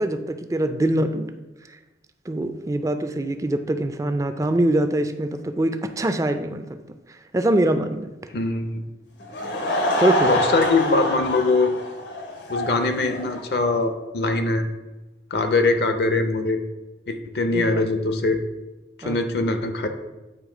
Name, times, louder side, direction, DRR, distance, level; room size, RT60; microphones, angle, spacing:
voice 1, 0.0-1.3 1.7-1.8 2.3-6.8 7.1-8.1 10.0-10.3 17.5-17.8 19.0-19.2, right 1 dB, 20° right, 9 dB, 0.3 m, -23 dB
voice 2, 8.3-8.8 10.2-11.7 12.5-14.6 15.3-16.6 17.1-18.4 19.0-19.9, left 3 dB, 65° left, 7 dB, 0.6 m, -22 dB
Laughter / Crowd, 9.2-13.7, left 1 dB, 90° left, 1.2 m, -26 dB
8.9 x 3.1 x 4.9 m, 1.1 s
head